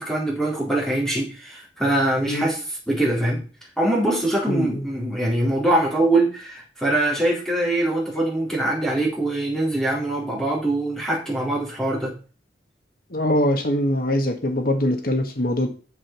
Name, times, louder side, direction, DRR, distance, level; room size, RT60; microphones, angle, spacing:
voice 1, 0.0-2.6 2.9-3.4 3.8-12.1, right 1 dB, 5° left, 3.9 m, -23 dB
voice 2, 4.5-4.8 13.1-15.7, left 1 dB, 50° left, 1.6 m, -22 dB
7.6 x 7.6 x 6.1 m
head